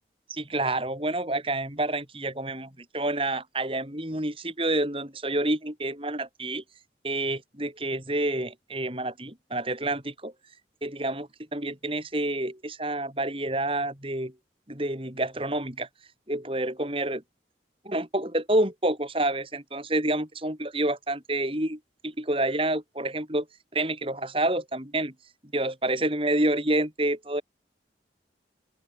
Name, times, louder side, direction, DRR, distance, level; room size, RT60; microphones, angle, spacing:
voice 1, 0.3-6.6 7.0-10.3 10.8-14.3 14.7-15.9 16.3-17.2 17.8-23.5 23.7-25.1 25.5-27.4, right 1 dB, 30° right, 5.8 m, -28 dB
open air
head